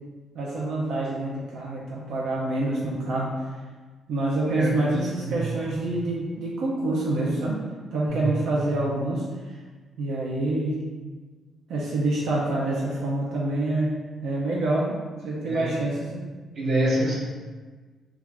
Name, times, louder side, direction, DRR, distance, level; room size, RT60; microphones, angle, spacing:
voice 1, 0.3-3.5 4.1-7.6 7.9-9.2 10.0-10.8 11.7-15.0 15.2-16.2, right 2 dB, 65° right, -4 dB, 0.6 m, -26 dB
voice 2, 4.5-5.5 8.1-8.4 15.4-15.7 16.6-17.1, right 1 dB, 35° right, -5 dB, 0.8 m, -27 dB
3.3 x 2.4 x 3.4 m, 1.4 s
cardioid pair, 180°, 0 cm